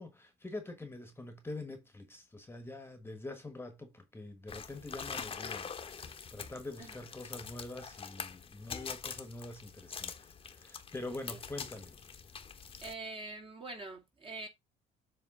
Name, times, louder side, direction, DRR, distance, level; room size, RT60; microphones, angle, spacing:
voice 1, 0.0-11.9, left 2 dB, 15° left, 1.4 m, -45 dB
sound 1, 4.5-12.9, left 6 dB, 30° left, 1.1 m, -44 dB
voice 2, 12.8-14.5, right 2 dB, 30° right, 2.4 m, -44 dB
7.5 x 3.2 x 5.5 m
cardioid pair, 110°, 17 cm